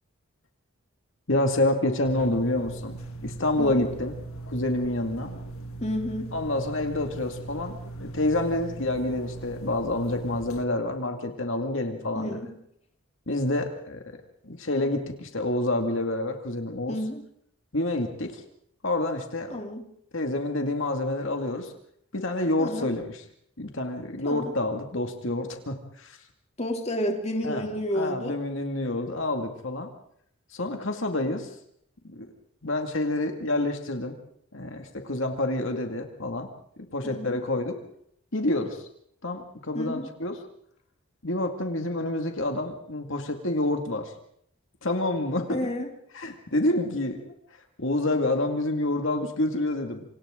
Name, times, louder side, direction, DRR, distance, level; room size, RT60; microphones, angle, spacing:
voice 1, 1.3-4.2 4.5-5.3 6.3-12.4 13.3-14.0 14.4-17.0 17.7-18.4 18.8-19.6 20.1-21.7 22.1-23.2 23.6-26.2 27.4-27.7 27.9-29.9 30.5-31.5 32.0-32.3 32.6-34.2 34.5-36.5 36.9-37.8 38.3-38.9 39.2-40.4 41.2-44.1 44.8-45.7 46.1-50.0, left 2 dB, 65° left, 4 dB, 2.2 m, -28 dB
sound 1, 2.1-10.6, right 2 dB, 80° left, 1.7 m, -39 dB
voice 2, 5.8-6.3 12.1-12.5 16.9-17.2 19.5-19.8 22.6-22.9 24.2-24.6 26.6-28.4 37.0-37.4 39.7-40.1 45.5-45.9, equal, 30° left, 2 dB, 3.0 m, -30 dB
27.5 x 26.5 x 3.8 m, 0.69 s
head